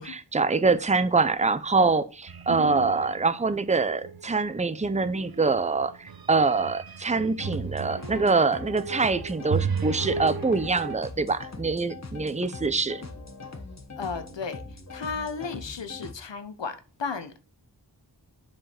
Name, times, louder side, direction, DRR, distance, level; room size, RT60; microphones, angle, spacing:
voice 1, 0.0-13.0, right 4 dB, 15° right, 0.7 m, -25 dB
sound 1, 2.3-3.3 3.6-4.2 5.0-11.0, right 5 dB, 60° right, 0.9 m, -34 dB
sound 2, 7.4-16.1, left 3 dB, 40° left, 1.4 m, -41 dB
voice 2, 14.0-17.4, left 5 dB, 90° left, 1.1 m, -34 dB
7.5 x 5.0 x 5.8 m
wide cardioid pair, 45°, 42 cm